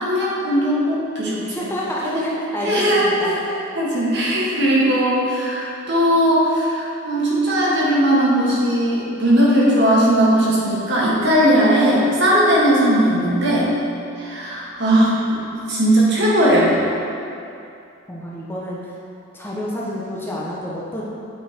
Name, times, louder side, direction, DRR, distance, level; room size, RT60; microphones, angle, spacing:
voice 1, 0.0-1.7 2.1-2.2 2.6-3.4 3.7-13.7 14.2-16.7, right 1 dB, 55° right, -6 dB, 1.7 m, -18 dB
voice 2, 1.4-3.4 18.1-18.9 19.3-21.0, left 1 dB, 10° left, -6 dB, 0.8 m, -28 dB
8.1 x 4.5 x 4.4 m, 2.6 s
head